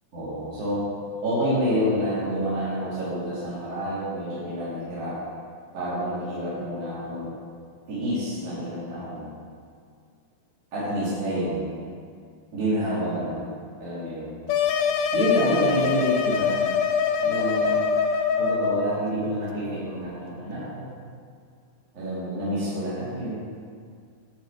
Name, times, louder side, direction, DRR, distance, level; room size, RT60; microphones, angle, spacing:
voice 1, 0.1-0.9 1.2-5.2 5.7-7.3 7.9-9.3 10.7-11.8 12.5-14.4 15.1-16.6 17.2-17.8 18.4-20.9 21.9-23.4, equal, 50° right, -12 dB, 4.2 m, -28 dB
sound 1, 14.5-19.0, left 6 dB, 75° left, 1.8 m, -23 dB
11.5 x 8.8 x 5.0 m, 2.2 s
omnidirectional pair, 3.9 m